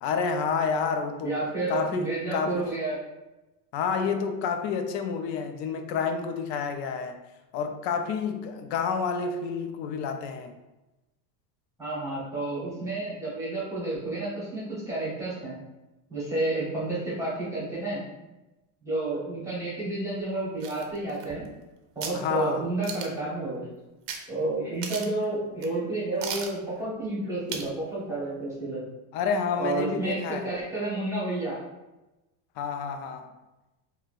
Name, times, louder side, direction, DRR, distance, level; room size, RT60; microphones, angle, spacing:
voice 1, 0.0-1.4 1.7-2.7 3.7-7.2 7.5-10.6 22.1-22.6 29.1-30.5 32.6-33.3, left 5 dB, 80° left, 6 dB, 0.5 m, -29 dB
voice 2, 1.2-3.0 11.8-15.5 16.1-18.0 18.8-21.4 21.9-23.6 24.3-28.8 29.6-31.6, right 2 dB, 5° right, -8 dB, 0.8 m, -30 dB
sound 1, 20.6-21.6 22.0-22.2 22.8-23.3 24.1-24.2 24.5-24.6 24.8-25.2 25.6-25.7 26.2-26.6 27.5-27.8 28.1-28.2, right 6 dB, 80° right, 0.7 m, -36 dB
3.8 x 2.2 x 2.4 m, 1.0 s
cardioid pair, 155°, 49 cm